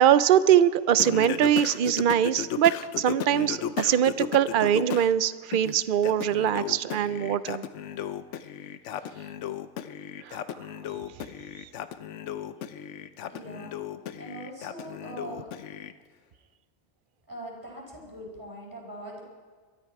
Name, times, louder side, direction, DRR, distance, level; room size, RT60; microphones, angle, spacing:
voice 1, 0.0-7.6 10.3-10.4, right 10 dB, 55° right, 15 dB, 0.6 m, -22 dB
Singing, 1.0-5.1 5.5-15.9, left 9 dB, 80° left, 1.0 m, -35 dB
voice 2, 13.3-13.7 14.1-15.5 17.3-19.2, right 1 dB, 20° right, -3 dB, 4.7 m, -41 dB
23.0 x 13.0 x 4.7 m, 1.5 s
omnidirectional pair, 1.2 m